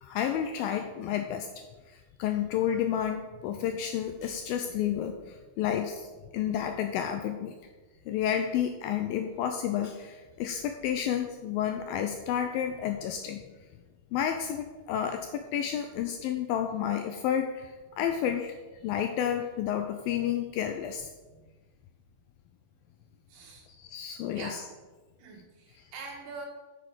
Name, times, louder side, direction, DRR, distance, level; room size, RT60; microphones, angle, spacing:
voice 1, 0.0-1.5 1.9-6.1 6.3-7.5 8.1-13.4 14.1-18.6 18.8-21.1 23.8-24.6 25.8-25.9, left 9 dB, 85° left, 6 dB, 2.1 m, -31 dB
voice 2, 23.3-23.6 24.3-24.6 25.2-26.5, right 4 dB, 60° right, -4 dB, 3.1 m, -44 dB
7.4 x 7.0 x 6.2 m, 1.3 s
omnidirectional pair, 4.7 m